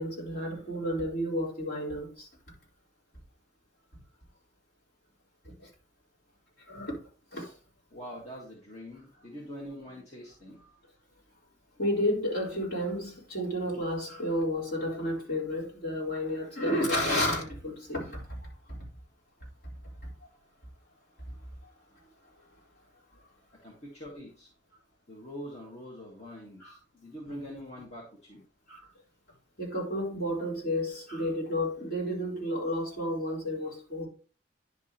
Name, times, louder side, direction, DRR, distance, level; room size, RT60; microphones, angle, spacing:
voice 1, 0.0-2.3 5.6-5.7 6.7-7.0 7.3-7.5 11.8-18.2 26.6-26.7 28.7-28.9 29.6-34.1, equal, 55° left, 4.1 m, -31 dB
voice 2, 7.9-10.6 23.1-23.2 23.6-24.5 25.1-28.4, equal, 35° left, 1.8 m, -44 dB
10.5 x 6.1 x 3.0 m
head